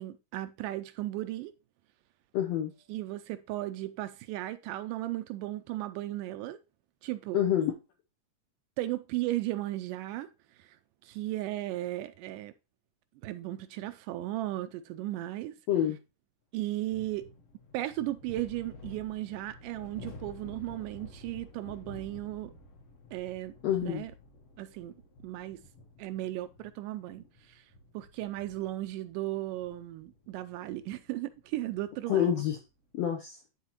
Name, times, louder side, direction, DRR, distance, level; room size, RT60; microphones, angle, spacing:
voice 1, 0.0-1.5 2.9-6.6 7.0-7.4 8.8-10.3 10.6-10.8 11.0-12.5 13.2-15.5 16.5-17.3 17.7-22.5 23.1-23.5 23.8-24.1 24.6-24.9 25.2-25.6 26.0-27.6 27.9-32.4, right 15 dB, 80° right, 2.0 m, -36 dB
voice 2, 2.3-2.7 7.3-7.7 15.7-16.0 23.6-24.0 32.1-32.6 32.9-33.4, left 10 dB, 75° left, 1.5 m, -27 dB
sound 1, 16.9-32.7, left 2 dB, 55° left, 1.7 m, -51 dB
11.5 x 4.0 x 2.9 m
omnidirectional pair, 3.9 m